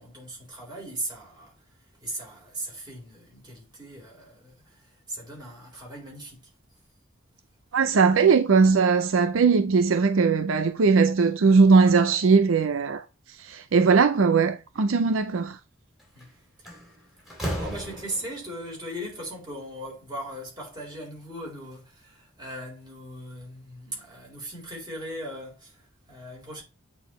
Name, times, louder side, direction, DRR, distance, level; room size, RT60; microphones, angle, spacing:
voice 1, 0.0-1.5 2.0-6.5 15.0-15.2 16.1-16.3 16.6-16.8 17.6-26.6, right 1 dB, 20° right, 3.9 m, -38 dB
voice 2, 7.7-13.0 13.5-15.6, right 5 dB, 70° right, 0.5 m, -19 dB
Slam, 16.0-16.2 16.7-18.5, equal, ahead, 2.7 m, -34 dB
8.5 x 4.1 x 3.1 m
head